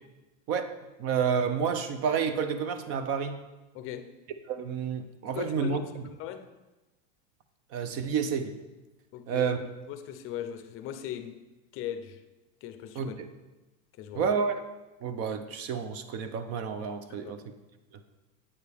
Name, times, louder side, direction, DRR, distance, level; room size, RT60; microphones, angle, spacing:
voice 1, 0.5-3.4 4.5-5.8 7.7-8.5 9.3-9.6 12.9-13.3 14.1-14.6 15.0-17.4, right 6 dB, 35° right, 9 dB, 0.6 m, -30 dB
voice 2, 3.7-4.1 5.3-6.4 9.1-9.5 9.9-11.4 11.7-12.2 12.6-13.1 14.0-14.3 17.2-17.3, left 11 dB, 35° left, 8 dB, 0.6 m, -39 dB
8.6 x 6.5 x 3.4 m, 1.1 s
supercardioid pair, 140°, 40 cm